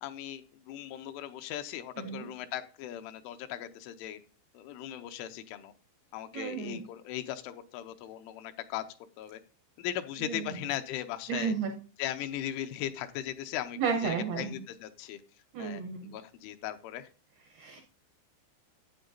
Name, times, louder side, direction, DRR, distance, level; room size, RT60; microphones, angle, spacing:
voice 1, 0.0-4.2 4.5-5.7 6.1-8.8 9.2-9.4 9.8-11.6 12.0-15.2 15.6-17.1, left 12 dB, 85° left, 9 dB, 3.1 m, -38 dB
voice 2, 2.0-2.3 6.3-6.9 10.2-10.5 11.3-11.7 13.8-14.6 15.5-16.2 17.5-17.8, right 6 dB, 80° right, 2 dB, 2.2 m, -33 dB
11.5 x 8.8 x 2.6 m, 0.36 s
omnidirectional pair, 5.6 m